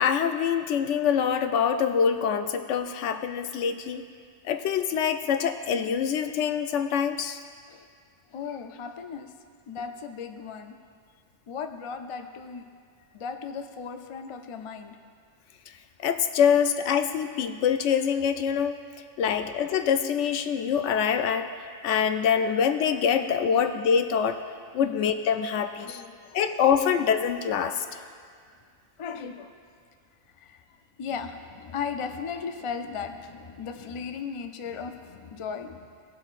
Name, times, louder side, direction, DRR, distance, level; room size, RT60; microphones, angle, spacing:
voice 1, 0.0-4.0 4.4-7.4 16.0-18.8 19.2-21.5 21.8-24.4 24.7-26.0 26.3-27.8, left 7 dB, 85° left, 8 dB, 0.9 m, -25 dB
voice 2, 8.3-9.4 9.7-10.8 11.5-12.7 13.1-15.0 24.8-24.9 25.6-26.4 29.0-29.5 30.4-30.6 31.0-35.9, left 6 dB, 50° left, 7 dB, 0.3 m, -36 dB
17.5 x 7.8 x 2.5 m, 2.1 s
omnidirectional pair, 1.2 m